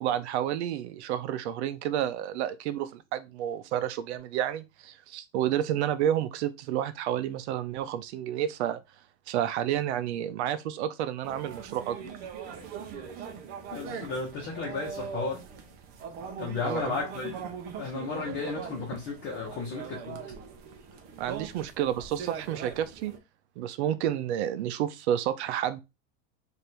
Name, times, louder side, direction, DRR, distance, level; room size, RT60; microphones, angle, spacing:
voice 1, 0.0-8.8 9.3-12.0 16.6-17.0 21.2-23.1 23.6-25.8, right 11 dB, 70° right, 0.6 m, -30 dB
sound 1, 11.2-23.2, right 7 dB, 30° right, 0.5 m, -41 dB
voice 2, 13.7-15.4 16.4-17.3 17.8-20.2, left 4 dB, 30° left, 1.0 m, -34 dB
3.3 x 2.6 x 4.4 m
supercardioid pair, 165°, 35 cm